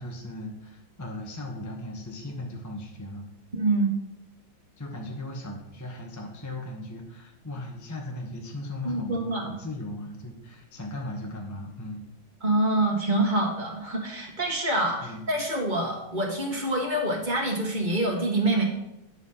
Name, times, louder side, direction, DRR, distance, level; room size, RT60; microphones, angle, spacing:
voice 1, 0.0-3.3 4.8-12.1 15.0-15.3, left 1 dB, 15° left, 0 dB, 0.7 m, -37 dB
voice 2, 3.5-3.9 8.8-9.5 12.4-18.6, right 2 dB, 25° right, -2 dB, 1.5 m, -26 dB
10.0 x 4.1 x 5.6 m, 0.87 s
omnidirectional pair, 2.2 m